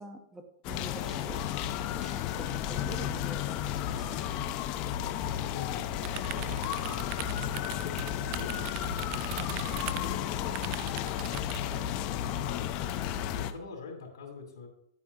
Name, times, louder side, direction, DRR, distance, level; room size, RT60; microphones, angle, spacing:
voice 1, 0.0-1.4 2.0-3.6 3.9-4.6, right 2 dB, 10° right, 6 dB, 0.8 m, -45 dB
sound 1, 0.6-13.5, left 11 dB, 35° left, 0.5 m, -33 dB
voice 2, 5.3-8.5 9.0-12.9 13.3-14.7, left 4 dB, 75° left, 2 dB, 2.8 m, -46 dB
sound 2, 6.0-11.6, right 15 dB, 40° right, 0.3 m, -41 dB
10.0 x 8.5 x 2.7 m, 0.73 s
hypercardioid pair, 140°, 2 cm